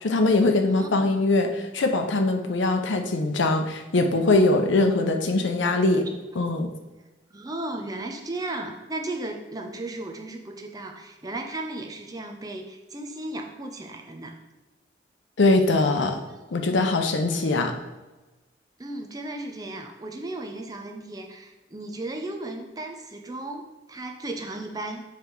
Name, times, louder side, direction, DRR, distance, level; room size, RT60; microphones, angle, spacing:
voice 1, 0.0-6.0 6.4-6.7 15.4-16.2 16.5-17.7, left 2 dB, 85° left, 5 dB, 0.7 m, -22 dB
voice 2, 0.6-1.2 5.6-6.0 7.3-14.4 16.3-16.4 18.8-25.0, right 2 dB, 20° right, 3 dB, 0.6 m, -35 dB
7.1 x 3.4 x 4.5 m, 1.1 s
head